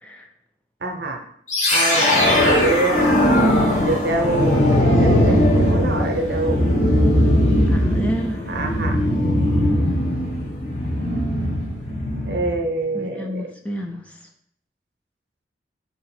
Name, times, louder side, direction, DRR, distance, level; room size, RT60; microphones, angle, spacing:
voice 1, 0.8-1.2 1.7-3.2 3.8-4.6 5.0-6.7 8.5-9.0 12.2-13.5, right 2 dB, 65° right, 3 dB, 0.7 m, -25 dB
sound 1, 1.5-12.6, left 1 dB, 40° left, 1.0 m, -19 dB
voice 2, 7.7-8.5 12.9-14.2, equal, 10° left, 2 dB, 0.3 m, -31 dB
4.9 x 2.5 x 4.2 m, 0.68 s
head